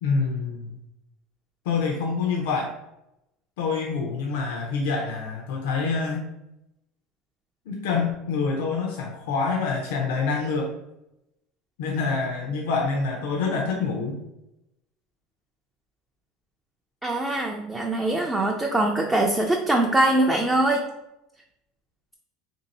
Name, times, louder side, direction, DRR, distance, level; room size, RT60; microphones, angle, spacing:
voice 1, 0.0-0.8 1.7-2.7 3.6-6.3 7.7-10.7 11.8-14.2, left 4 dB, 90° left, 0 dB, 0.6 m, -26 dB
voice 2, 17.0-20.8, right 1 dB, 10° right, 1 dB, 0.3 m, -22 dB
2.9 x 2.7 x 4.0 m, 0.87 s
cardioid pair, 150°, 0 cm